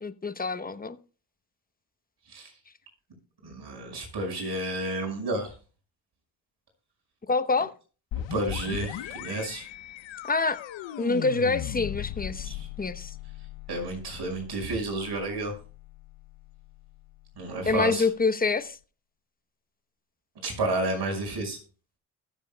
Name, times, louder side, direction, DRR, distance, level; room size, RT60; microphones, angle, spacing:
voice 1, 0.0-1.0 7.3-7.7 10.3-10.6 11.0-13.1 17.7-18.8, left 4 dB, 20° left, 0.8 m, -26 dB
voice 2, 3.4-5.5 8.3-9.7 12.4-12.7 13.7-15.5 17.3-18.1 20.4-21.6, right 2 dB, 55° right, 5.5 m, -31 dB
sound 1, 8.1-17.7, left 12 dB, 70° left, 0.8 m, -38 dB
20.5 x 7.3 x 2.2 m
supercardioid pair, 60°, 47 cm